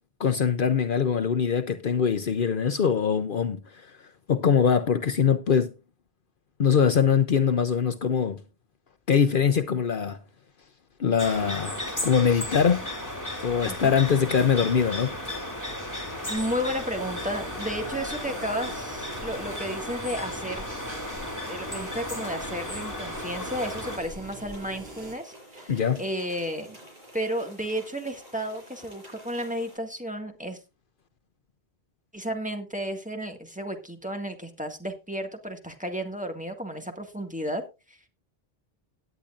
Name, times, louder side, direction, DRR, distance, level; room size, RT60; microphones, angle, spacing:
voice 1, 0.2-3.6 4.3-5.7 6.6-8.4 9.1-10.2 11.0-12.8 13.4-15.1 25.7-26.0, left 7 dB, 60° left, 0.9 m, -23 dB
sound 1, 11.2-24.0, left 1 dB, 15° left, 2.7 m, -35 dB
sound 2, 13.6-29.8, right 1 dB, 50° right, 7.3 m, -50 dB
voice 2, 16.3-20.6 21.5-26.8 27.1-30.6 32.1-38.0, equal, 5° right, 1.8 m, -33 dB
sound 3, 16.4-25.1, right 1 dB, 70° right, 4.0 m, -43 dB
17.5 x 10.0 x 2.5 m
omnidirectional pair, 1.0 m